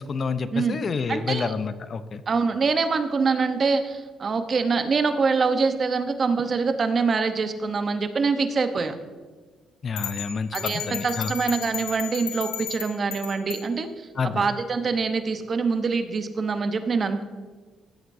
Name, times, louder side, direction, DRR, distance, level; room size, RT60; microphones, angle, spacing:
voice 1, 0.0-2.2 9.8-11.3 14.2-14.5, left 5 dB, 45° left, 13 dB, 0.6 m, -29 dB
voice 2, 1.1-1.5 2.3-9.0 10.5-17.2, right 4 dB, 45° right, 8 dB, 0.9 m, -25 dB
sound 1, 10.0-13.7, left 9 dB, 90° left, 1.5 m, -34 dB
15.5 x 8.0 x 2.7 m, 1.4 s
cardioid pair, 90°, 0 cm